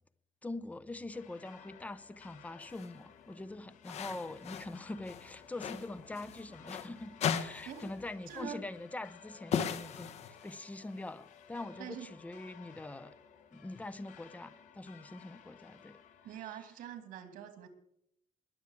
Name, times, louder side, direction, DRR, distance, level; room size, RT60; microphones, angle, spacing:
voice 1, 0.4-10.1 10.4-13.1 13.5-16.0 16.3-16.5, left 2 dB, 10° left, 14 dB, 0.7 m, -44 dB
sound 1, 1.1-16.4, left 7 dB, 70° left, 2.1 m, -56 dB
sound 2, 2.6-2.9 3.8-4.8 5.0-6.9 7.2-8.0 8.3-8.4 9.5-10.6, left 7 dB, 55° left, 1.2 m, -37 dB
voice 2, 8.3-8.6 11.8-12.1 16.2-17.7, right 8 dB, 85° right, 8 dB, 2.5 m, -44 dB
20.5 x 7.2 x 8.2 m, 0.74 s
cardioid pair, 165°, 14 cm